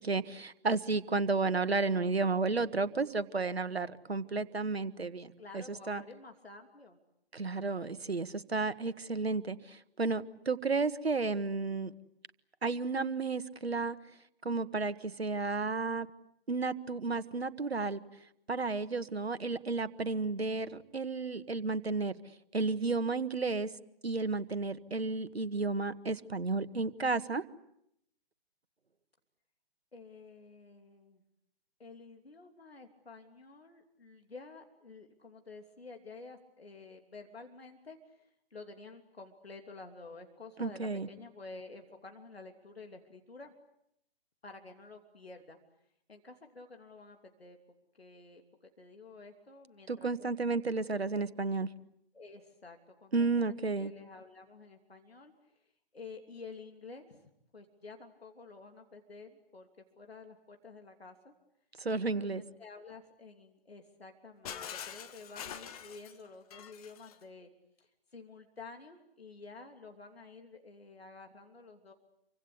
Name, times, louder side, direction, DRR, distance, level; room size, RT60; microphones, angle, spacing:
voice 1, 0.0-6.0 7.3-11.9 12.6-14.0 14.4-16.1 16.5-18.0 18.5-22.1 22.5-23.7 24.0-27.4 40.6-41.1 49.9-51.7 53.1-53.9 61.8-62.4, right 3 dB, 80° right, 12 dB, 1.6 m, -32 dB
voice 2, 5.4-7.0 29.9-31.2 31.8-43.5 44.4-45.6 46.1-47.6 47.9-48.4 48.8-50.3 52.1-55.3 55.6-61.3 61.9-67.5 67.8-71.9, left 3 dB, 75° left, 4 dB, 3.2 m, -51 dB
Shatter, 64.5-67.2, left 8 dB, 35° left, 1.9 m, -44 dB
27.5 x 25.0 x 8.3 m, 0.79 s
figure-of-eight pair, 130°, 31 cm